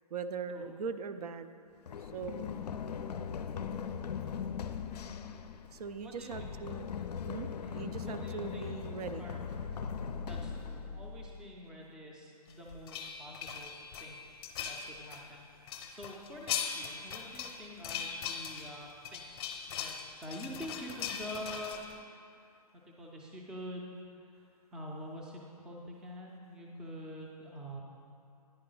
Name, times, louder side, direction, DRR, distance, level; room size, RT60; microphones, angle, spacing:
voice 1, 0.1-1.5 2.0-2.5 5.4-6.9 7.3-9.3, right 5 dB, 75° right, 10 dB, 0.4 m, -41 dB
Run, 1.9-11.6, left 6 dB, 85° left, 0.4 m, -40 dB
voice 2, 6.0-6.5 7.6-8.7 9.2-9.5 10.2-21.8 22.4-27.8, equal, 5° right, -2 dB, 0.4 m, -46 dB
sound 1, 12.5-15.2 15.7-22.0, left 7 dB, 35° left, 0.7 m, -40 dB
9.8 x 4.7 x 3.8 m, 2.6 s
hypercardioid pair, 145°, 20 cm